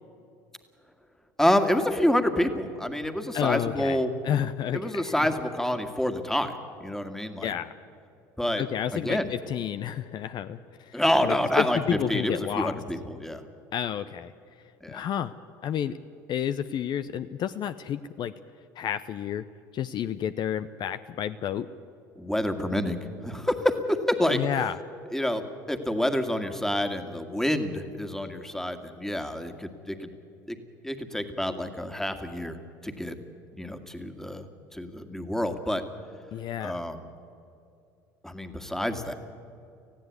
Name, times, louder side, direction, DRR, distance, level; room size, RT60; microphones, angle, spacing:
voice 1, 1.4-4.1 4.7-6.5 6.8-7.5 8.4-8.6 8.9-9.3 10.9-11.8 12.1-13.4 14.8-15.0 22.2-24.4 25.1-30.1 30.5-30.6 30.8-32.6 32.8-33.2 33.5-34.5 34.7-35.8 36.6-37.0 38.2-39.1, left 1 dB, 5° left, 7 dB, 2.0 m, -27 dB
voice 2, 3.3-5.3 7.4-7.7 8.6-12.8 13.7-14.3 14.9-15.3 15.6-16.0 16.3-18.3 18.8-19.5 19.7-21.7 24.3-24.8 36.3-36.8, left 9 dB, 50° left, 12 dB, 0.6 m, -30 dB
18.5 x 15.0 x 9.6 m, 2.5 s
hypercardioid pair, 75°, 10 cm